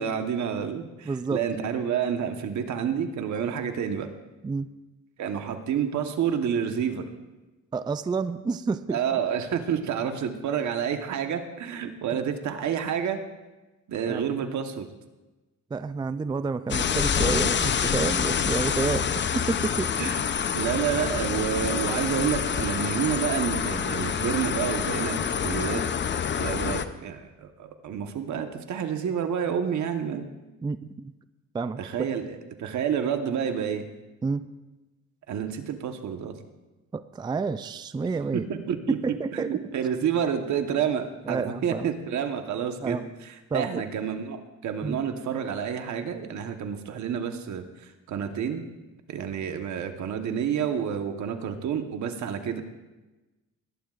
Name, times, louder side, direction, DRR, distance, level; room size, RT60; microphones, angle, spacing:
voice 1, 0.0-4.1 5.2-7.0 8.9-13.2 13.9-14.9 20.0-20.2 20.5-25.2 25.4-25.8 26.4-30.3 31.8-33.8 35.3-36.3 38.3-39.0 39.3-43.0 43.5-48.6 49.1-52.6, right 8 dB, 70° right, 6 dB, 1.3 m, -29 dB
voice 2, 1.1-1.4 4.4-4.7 7.7-9.2 12.1-12.2 14.1-14.3 15.7-20.0 30.6-31.1 31.5-32.1 34.2-34.5 36.9-38.5 38.9-39.6 41.3-41.9 42.8-43.1 43.5-43.8 44.8-45.0, right 4 dB, 15° right, 12 dB, 0.4 m, -29 dB
sound 1, 16.7-26.8, left 7 dB, 40° left, 0.7 m, -27 dB
19.5 x 11.5 x 2.5 m, 1.1 s
cardioid pair, 90°, 30 cm